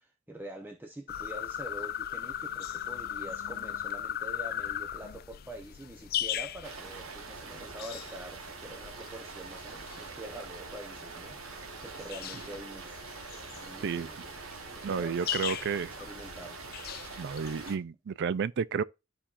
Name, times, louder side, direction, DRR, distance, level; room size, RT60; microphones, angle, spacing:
voice 1, 0.0-13.1 13.5-14.2 14.5-15.3 15.9-16.6, right 1 dB, 10° right, 0.7 m, -45 dB
sound 1, 1.1-17.7, left 10 dB, 45° left, 0.4 m, -39 dB
sound 2, 6.6-17.8, right 4 dB, 80° right, 1.1 m, -44 dB
voice 2, 14.8-15.9 17.2-18.8, right 6 dB, 55° right, 0.4 m, -31 dB
12.5 x 4.3 x 2.5 m
head